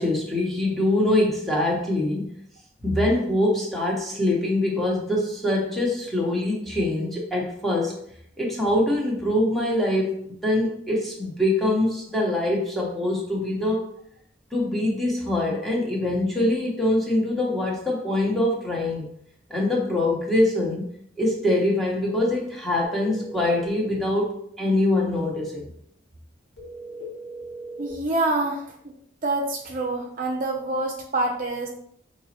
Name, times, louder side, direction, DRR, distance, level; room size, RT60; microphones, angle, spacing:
voice 1, 0.0-2.2 2.8-7.9 8.4-13.8 14.5-19.1 19.5-20.8 21.2-25.7, left 1 dB, ahead, -4 dB, 0.9 m, -24 dB
sound 1, 22.8-23.7 26.6-28.0, right 1 dB, 85° left, 1.2 m, -38 dB
voice 2, 27.8-28.9 29.2-31.7, right 2 dB, 45° right, 1 dB, 0.5 m, -26 dB
5.3 x 3.0 x 2.8 m, 0.69 s
head